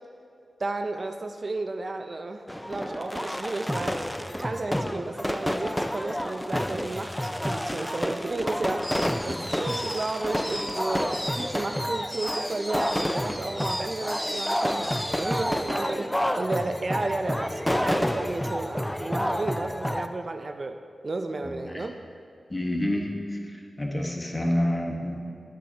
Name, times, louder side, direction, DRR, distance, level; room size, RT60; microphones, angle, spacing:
voice 1, 0.6-4.0 4.3-8.9 9.2-20.8 21.0-22.0, right 2 dB, 50° right, 6 dB, 0.5 m, -33 dB
sound 1, 2.5-20.1, equal, 5° left, 0.4 m, -29 dB
voice 2, 21.4-21.8 22.5-25.3, left 1 dB, 25° left, 1 dB, 1.4 m, -29 dB
11.5 x 8.7 x 2.9 m, 2.6 s
cardioid pair, 60°, 0 cm